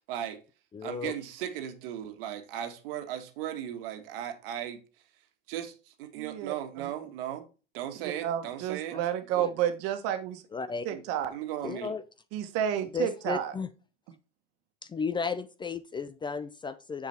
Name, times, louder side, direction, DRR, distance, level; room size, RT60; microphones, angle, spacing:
voice 1, 0.1-0.4 0.8-4.8 5.5-7.5 7.7-9.0 10.9-11.0 11.3-11.9, right 11 dB, 70° right, 1.8 m, -37 dB
voice 2, 0.7-1.1 9.4-9.5 10.5-10.9 11.6-12.0 12.9-13.7 14.8-17.1, left 5 dB, 15° left, 0.6 m, -34 dB
voice 3, 6.1-6.9 8.0-10.4 10.8-11.3 12.3-13.5, right 10 dB, 55° right, 1.6 m, -31 dB
7.3 x 6.6 x 4.4 m
supercardioid pair, 115°, 29 cm